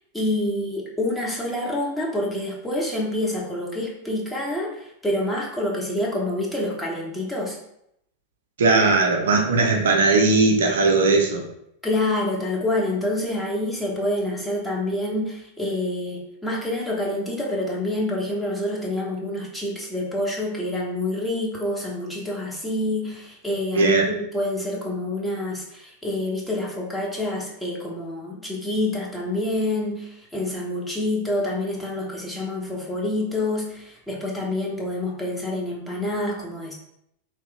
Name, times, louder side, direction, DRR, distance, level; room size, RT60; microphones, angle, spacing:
voice 1, 0.1-7.6 11.8-36.7, left 1 dB, 5° left, -3 dB, 0.8 m, -27 dB
voice 2, 8.6-11.4 23.7-24.1, right 3 dB, 65° right, 1 dB, 0.5 m, -18 dB
3.0 x 2.4 x 3.3 m, 0.77 s
figure-of-eight pair, 90°, 0 cm